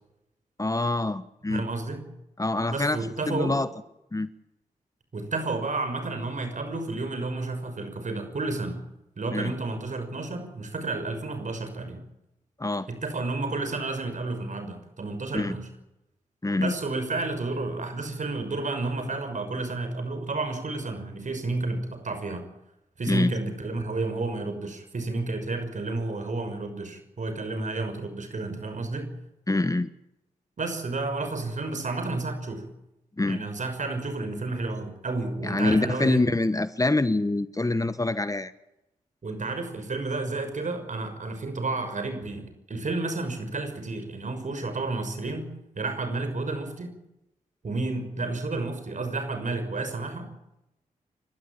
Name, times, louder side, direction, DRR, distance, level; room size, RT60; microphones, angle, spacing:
voice 1, 0.6-1.7 2.4-3.7 4.1-4.3 9.3-9.5 12.6-12.9 15.3-15.5 16.4-16.7 23.1-23.3 29.5-29.9 33.2-33.4 35.4-38.5, left 2 dB, 25° left, 13 dB, 1.2 m, -25 dB
voice 2, 1.5-2.0 2.7-3.5 5.1-8.8 9.2-12.0 12.9-15.7 16.6-22.5 23.0-29.1 30.6-32.7 33.3-36.3 39.2-46.9 47.6-50.3, right 3 dB, 60° right, 8 dB, 6.1 m, -31 dB
28.5 x 13.0 x 8.9 m, 0.88 s
cardioid pair, 45°, 15 cm